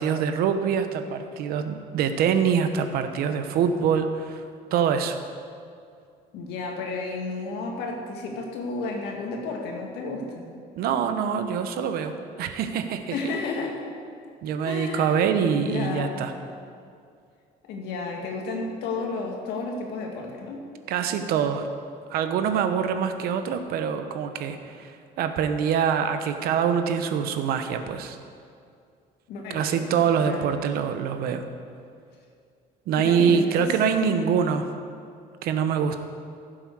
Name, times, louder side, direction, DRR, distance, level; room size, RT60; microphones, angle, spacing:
voice 1, 0.0-4.4 4.7-5.2 10.8-13.1 14.4-16.3 20.9-21.7 22.1-28.2 29.5-31.4 32.9-34.7 35.4-36.0, right 7 dB, 60° right, 8 dB, 0.9 m, -24 dB
voice 2, 6.3-10.5 13.1-13.8 14.6-15.2 15.5-16.2 17.7-20.6 29.3-29.9 30.2-30.4 33.0-33.7 34.0-34.4, left 3 dB, 75° left, 1 dB, 2.1 m, -32 dB
16.0 x 7.7 x 4.8 m, 2.3 s
cardioid pair, 160°, 17 cm